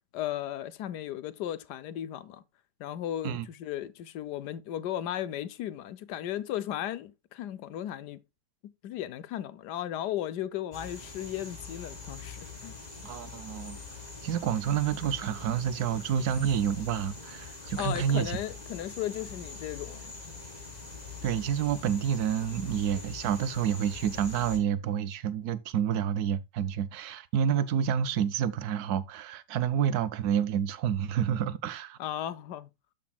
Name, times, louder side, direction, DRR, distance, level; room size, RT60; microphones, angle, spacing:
voice 1, 0.1-2.4 2.8-8.2 8.6-12.8 17.8-20.1 32.0-32.7, left 12 dB, 80° left, 1.3 m, -36 dB
sound 1, 10.7-24.6, left 4 dB, 25° left, 2.1 m, -43 dB
voice 2, 13.0-13.8 14.2-18.4 21.2-32.0, right 9 dB, 70° right, 1.2 m, -29 dB
13.0 x 5.3 x 2.3 m
omnidirectional pair, 1.8 m